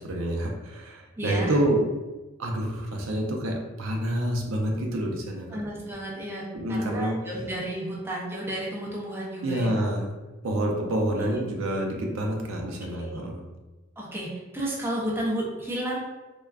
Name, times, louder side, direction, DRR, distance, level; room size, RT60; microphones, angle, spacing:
voice 1, 0.0-1.9 2.4-5.6 6.5-7.2 9.4-10.1 10.4-13.4, right 1 dB, 70° right, 1 dB, 0.5 m, -28 dB
voice 2, 1.2-1.6 5.5-9.9 11.2-11.3 12.9-13.2 14.0-14.3 14.5-16.0, right 1 dB, 10° right, -4 dB, 0.4 m, -32 dB
3.3 x 2.2 x 2.3 m, 1.2 s
head